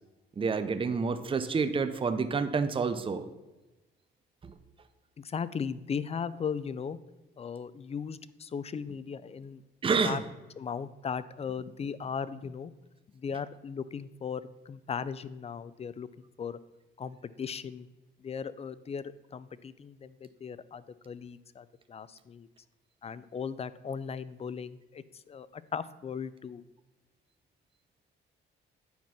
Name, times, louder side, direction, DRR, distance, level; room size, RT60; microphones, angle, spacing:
voice 1, 0.4-3.3 4.4-4.5 9.8-10.2, right 5 dB, 25° right, 11 dB, 0.6 m, -28 dB
voice 2, 5.2-7.0 7.4-9.6 10.0-10.2 10.6-12.7 13.1-16.1 16.4-16.6 17.0-17.9 18.2-22.5 23.0-26.6, left 6 dB, 30° left, 16 dB, 0.4 m, -37 dB
9.2 x 4.4 x 5.8 m, 1.1 s
cardioid pair, 90°, 20 cm